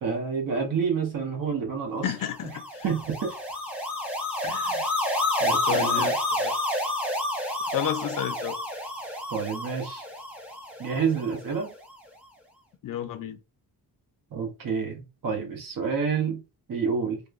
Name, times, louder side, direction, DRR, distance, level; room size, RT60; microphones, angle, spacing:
voice 1, 0.0-2.0 2.8-3.3 5.4-6.1 9.3-10.0 10.8-11.7 14.3-16.4 16.7-17.2, right 6 dB, 60° right, 0.9 m, -28 dB
voice 2, 2.0-2.8 4.5-4.8 5.6-6.5 7.6-8.6 12.8-13.4, left 9 dB, 60° left, 0.5 m, -32 dB
sound 1, 2.3-11.6, left 1 dB, 5° right, 0.6 m, -29 dB
2.9 x 2.1 x 2.3 m
wide cardioid pair, 135°, 38 cm